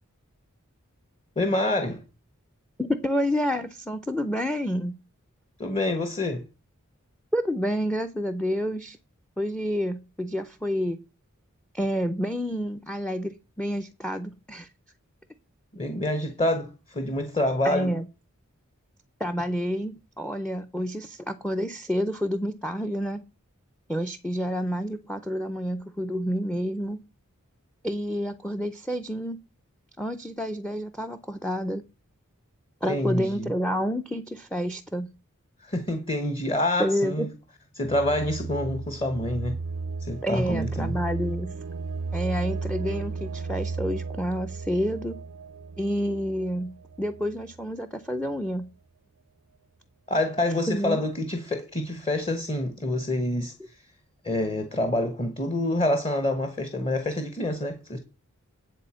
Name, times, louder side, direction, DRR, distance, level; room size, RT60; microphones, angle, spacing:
voice 1, 1.4-2.0 5.6-6.4 15.7-17.9 32.9-33.5 35.6-37.3 37.7-39.6 40.0-41.0 50.1-53.7 54.2-58.0, left 1 dB, 25° left, 1.0 m, -27 dB
voice 2, 2.8-5.0 7.3-9.0 9.4-11.0 11.7-14.7 17.6-18.1 19.2-23.2 23.9-27.0 27.8-29.4 30.0-31.8 32.8-35.1 36.8-37.3 40.2-41.5 42.1-45.2 45.8-46.7 47.0-48.7 50.7-51.0, equal, 5° left, 0.4 m, -29 dB
sound 1, 37.8-47.6, right 4 dB, 85° right, 0.5 m, -34 dB
10.5 x 4.2 x 7.4 m
head